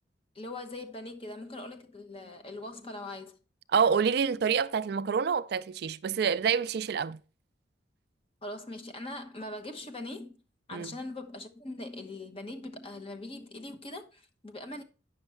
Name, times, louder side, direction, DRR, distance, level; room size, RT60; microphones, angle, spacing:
voice 1, 0.3-3.4 8.4-10.3 10.7-14.8, left 2 dB, 30° left, 1.0 m, -41 dB
voice 2, 3.7-7.2 10.7-11.0, right 6 dB, 55° right, 0.3 m, -27 dB
9.0 x 6.4 x 4.4 m
head